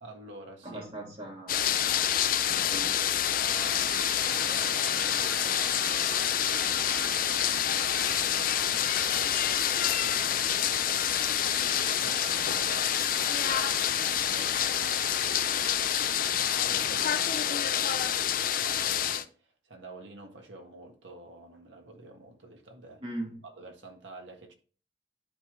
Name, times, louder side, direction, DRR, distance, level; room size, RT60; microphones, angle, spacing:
voice 1, 0.0-0.8 2.6-8.3 8.7-11.1 11.4-13.8 14.1-23.0 23.4-24.5, right 2 dB, 90° right, 1.6 m, -48 dB
voice 2, 0.6-1.8 2.5-3.0 23.0-23.4, right 1 dB, 30° right, 1.6 m, -40 dB
sound 1, 1.5-19.2, left 10 dB, 50° left, 0.4 m, -27 dB
sound 2, 3.5-17.4, right 4 dB, 65° right, 1.0 m, -43 dB
11.0 x 3.8 x 3.1 m
head